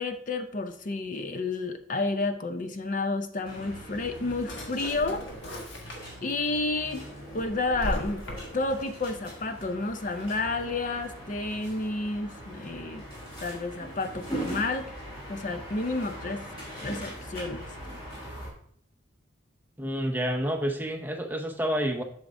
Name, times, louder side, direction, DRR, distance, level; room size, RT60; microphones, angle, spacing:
voice 1, 0.0-5.3 6.2-7.1 7.3-8.3 8.5-13.1 13.4-14.9 15.3-16.5 16.8-17.7, left 3 dB, 40° left, 8 dB, 0.5 m, -30 dB
sound 1, 3.4-18.5, right 1 dB, 25° left, 2.9 m, -41 dB
Drawer open or close, 4.0-6.3 6.8-8.8, equal, 70° left, 1.5 m, -38 dB
voice 2, 19.8-22.0, equal, 10° right, 4 dB, 0.5 m, -29 dB
8.2 x 6.4 x 2.6 m, 0.64 s
head